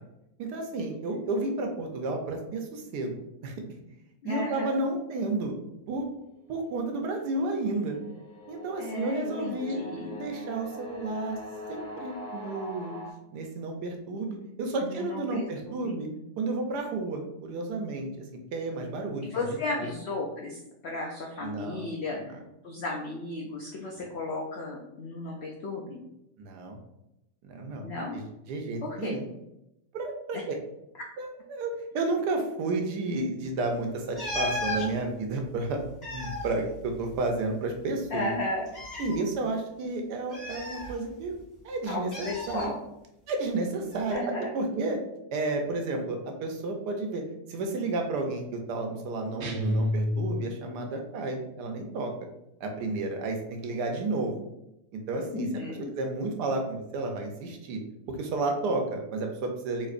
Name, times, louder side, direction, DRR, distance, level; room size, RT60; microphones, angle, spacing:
voice 1, 0.4-3.2 3.4-3.6 4.2-5.5 5.9-6.1 6.5-8.0 8.5-9.8 10.2-11.4 11.7-12.9 13.3-16.1 16.4-18.1 18.5-19.5 19.8-19.9 21.4-21.9 23.9-24.0 26.4-26.8 27.4-28.2 28.5-29.2 29.9-30.6 31.2-35.8 36.1-38.3 39.0-41.4 41.6-42.7 43.3-45.0 45.3-47.2 47.5-52.1 52.6-54.4 54.9-55.5 56.0-57.8 58.1-59.9, right 2 dB, 85° right, 3 dB, 1.2 m, -31 dB
voice 2, 4.2-4.8 8.8-10.2 14.8-15.9 19.2-22.4 22.6-26.0 27.8-28.2 28.8-29.2 30.3-30.4 31.0-31.1 38.1-38.7 41.9-42.8 44.1-44.5 55.3-55.9, left 2 dB, 85° left, -1 dB, 0.5 m, -34 dB
sound 1, 6.4-13.1, left 1 dB, 50° left, 1.2 m, -42 dB
sound 2, 34.1-34.9 35.8-37.5 37.7-37.8 38.7-39.2 40.3-41.4 42.1-42.7 43.9-44.1, left 2 dB, 30° left, 1.7 m, -35 dB
sound 3, 49.4-50.8, left 1 dB, 60° right, 0.7 m, -29 dB
4.1 x 2.8 x 2.5 m, 0.87 s
omnidirectional pair, 1.7 m